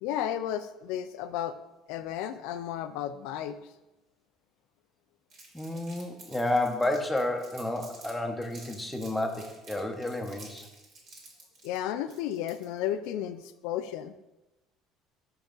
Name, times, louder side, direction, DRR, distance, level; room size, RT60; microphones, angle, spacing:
voice 1, 0.0-1.6 1.9-3.6 5.7-5.8 11.6-14.2, left 11 dB, 85° left, 10 dB, 0.3 m, -33 dB
Crumpling crinkling, 5.3-8.1 8.4-12.8, right 3 dB, 55° right, 2.1 m, -51 dB
voice 2, 5.5-10.7, left 1 dB, 5° left, 4 dB, 0.8 m, -31 dB
5.9 x 5.3 x 3.8 m, 1.0 s
cardioid pair, 115°, 0 cm